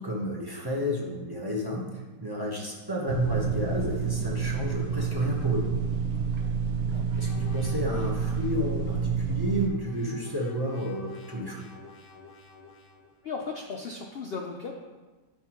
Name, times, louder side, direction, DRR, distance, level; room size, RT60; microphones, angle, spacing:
voice 1, 0.0-5.7 7.2-11.7, equal, 20° right, -2 dB, 0.8 m, -31 dB
sound 1, 3.1-9.7, right 6 dB, 65° right, 1.2 m, -29 dB
sound 2, 7.1-8.7 9.5-13.1, left 3 dB, 20° left, 0.6 m, -50 dB
voice 2, 13.2-14.7, left 4 dB, 75° left, 1 dB, 0.5 m, -36 dB
9.4 x 5.8 x 3.0 m, 1.3 s
omnidirectional pair, 1.8 m